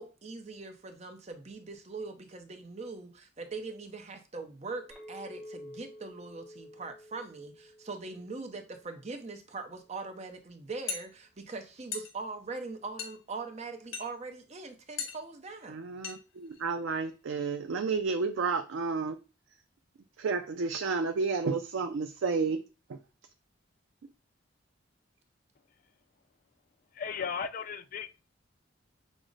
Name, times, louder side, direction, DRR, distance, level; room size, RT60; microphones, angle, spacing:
voice 1, 0.0-15.8, right 3 dB, 35° right, 0.6 m, -41 dB
Chink clink, 4.9-9.4, equal, ahead, 1.1 m, -50 dB
sound 1, 10.9-11.1 11.9-12.1 13.0-13.2 13.9-14.1 15.0-15.2 16.0-16.1 16.5-16.6 16.9-17.1, left 6 dB, 80° left, 1.2 m, -37 dB
voice 2, 15.7-19.2 20.2-22.6 22.9-23.0, right 4 dB, 75° right, 0.4 m, -31 dB
voice 3, 26.9-28.1, left 6 dB, 40° left, 0.4 m, -35 dB
6.0 x 2.1 x 3.9 m
head